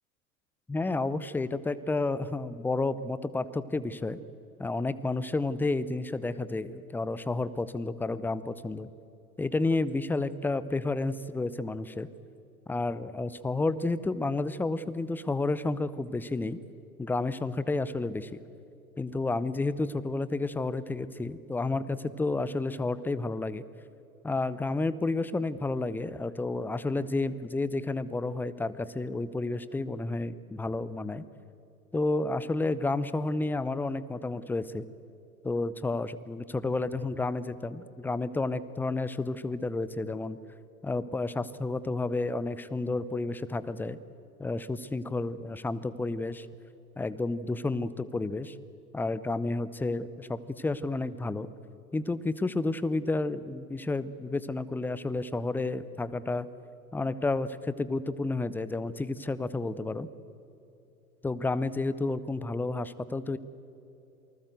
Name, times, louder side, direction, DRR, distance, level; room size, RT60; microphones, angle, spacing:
voice 1, 0.7-4.2 4.6-8.9 9.4-12.1 12.7-16.6 17.0-18.4 19.0-23.6 24.2-31.2 31.9-34.8 35.4-40.4 40.8-44.0 44.4-46.5 47.0-48.6 48.9-51.5 51.9-56.5 56.9-60.1 61.2-63.4, left 3 dB, 5° left, 16 dB, 0.6 m, -31 dB
28.0 x 20.0 x 8.0 m, 2.9 s
figure-of-eight pair, 90°, 44 cm